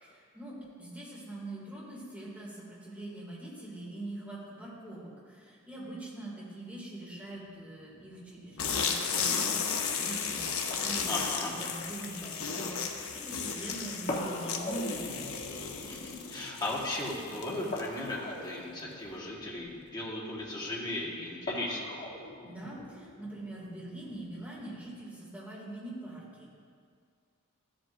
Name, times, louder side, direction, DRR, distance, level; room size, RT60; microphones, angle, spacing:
voice 1, 0.0-11.1 11.5-15.2 22.4-26.5, right 1 dB, 5° right, -7 dB, 2.4 m, -43 dB
sound 1, 7.4-24.9, left 2 dB, 40° left, 1.1 m, -44 dB
sound 2, 8.6-18.1, left 6 dB, 75° left, 0.8 m, -34 dB
voice 2, 11.1-11.5 15.9-21.9, left 1 dB, 20° left, -4 dB, 1.4 m, -36 dB
13.5 x 7.8 x 2.6 m, 2.2 s
head